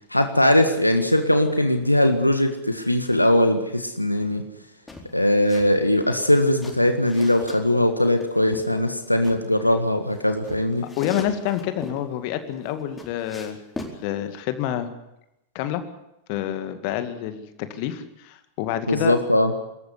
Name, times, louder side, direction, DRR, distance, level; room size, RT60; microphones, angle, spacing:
voice 1, 0.1-4.5 5.1-10.8 18.9-19.5, left 1 dB, 85° left, 7 dB, 1.7 m, -20 dB
sound 1, 4.9-5.7 6.0-7.6 8.2-9.4 10.1-12.0 12.5-14.0, left 2 dB, 10° left, 4.4 m, -40 dB
voice 2, 11.0-14.9 15.5-15.8 16.3-19.1, left 11 dB, 45° left, 10 dB, 2.1 m, -28 dB
25.5 x 14.0 x 9.7 m, 0.88 s
figure-of-eight pair, 90°, 0 cm